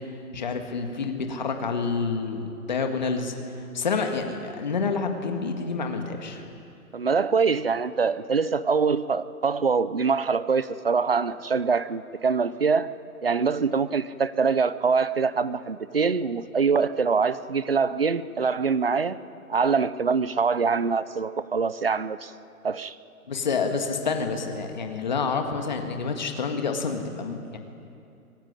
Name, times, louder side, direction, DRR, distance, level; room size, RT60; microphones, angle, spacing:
voice 1, 0.3-3.4 3.7-6.4 23.3-27.6, left 4 dB, 30° left, 4 dB, 1.8 m, -28 dB
voice 2, 6.9-12.9 13.2-19.2 19.5-22.3 22.6-23.0, right 5 dB, 40° right, 16 dB, 0.6 m, -24 dB
25.0 x 16.0 x 9.9 m, 2.7 s
hypercardioid pair, 180°, 44 cm